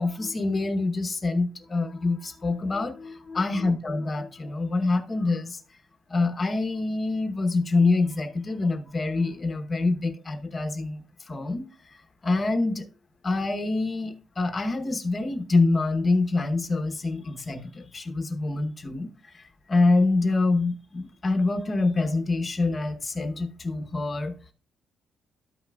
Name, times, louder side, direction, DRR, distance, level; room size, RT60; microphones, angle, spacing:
voice 1, 0.0-5.6 6.1-12.9 13.2-24.4, left 3 dB, 25° left, 0.9 m, -26 dB
13.0 x 5.7 x 2.3 m
cardioid pair, 145°, 0 cm